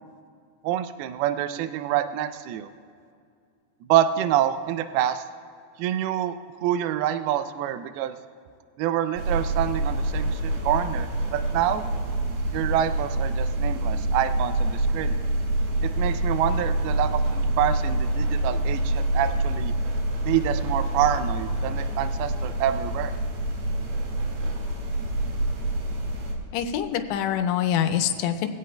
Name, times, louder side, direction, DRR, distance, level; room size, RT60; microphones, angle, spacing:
voice 1, 0.6-2.7 3.9-5.2 5.8-6.3 6.6-8.2 8.8-11.8 12.5-15.2 15.8-19.7 20.2-23.1, right 11 dB, 85° right, 10 dB, 2.2 m, -26 dB
sound 1, 9.2-26.3, right 1 dB, 65° right, 3.9 m, -26 dB
voice 2, 26.5-28.5, left 9 dB, 85° left, 7 dB, 3.0 m, -25 dB
21.5 x 16.0 x 2.3 m, 2.3 s
omnidirectional pair, 5.1 m